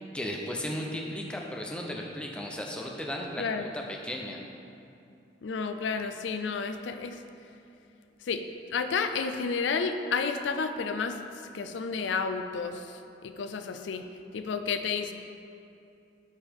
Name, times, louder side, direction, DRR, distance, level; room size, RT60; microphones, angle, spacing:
voice 1, 0.1-4.4, left 1 dB, 5° left, -1 dB, 0.6 m, -35 dB
voice 2, 5.4-7.2 8.2-8.4 8.7-11.2 11.5-15.1, left 5 dB, 85° left, 8 dB, 0.4 m, -31 dB
9.1 x 5.5 x 3.5 m, 2.7 s
head